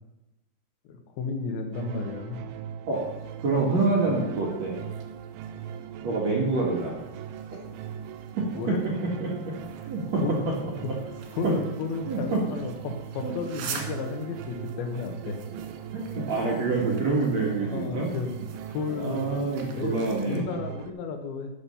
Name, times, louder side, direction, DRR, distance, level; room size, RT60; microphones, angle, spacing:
voice 1, 0.9-2.5 3.7-3.8 8.5-8.8 10.2-10.4 10.8-10.9 11.3-15.5 17.6-18.3 18.7-21.5, left 4 dB, 75° left, 4 dB, 2.3 m, -33 dB
sound 1, 1.7-20.9, right 9 dB, 90° right, 2.4 m, -39 dB
sound 2, 2.9-20.4, right 6 dB, 70° right, 3.9 m, -46 dB
voice 2, 3.4-4.8 6.0-7.0 8.4-8.5 9.2-9.3 9.9-10.2 11.4-11.5 12.1-12.4 13.2-13.3 15.9-18.1 19.0-20.4, right 3 dB, 55° right, -3 dB, 1.9 m, -26 dB
9.7 x 7.3 x 7.0 m, 0.98 s
omnidirectional pair, 5.9 m